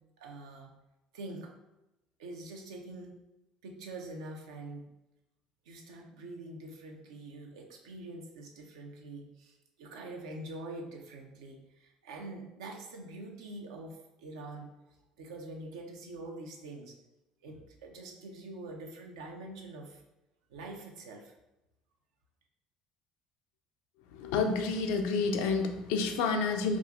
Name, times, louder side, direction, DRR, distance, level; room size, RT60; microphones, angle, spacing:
voice 1, 0.2-0.7 1.1-1.5 2.2-3.1 3.6-4.8 5.7-14.9 15.2-17.0 17.4-20.0 20.5-21.3, right 2 dB, 65° right, 1 dB, 0.5 m, -45 dB
voice 2, 24.1-26.8, left 4 dB, 60° left, 5 dB, 0.4 m, -29 dB
4.8 x 2.5 x 2.3 m, 0.95 s
figure-of-eight pair, 55°, 3 cm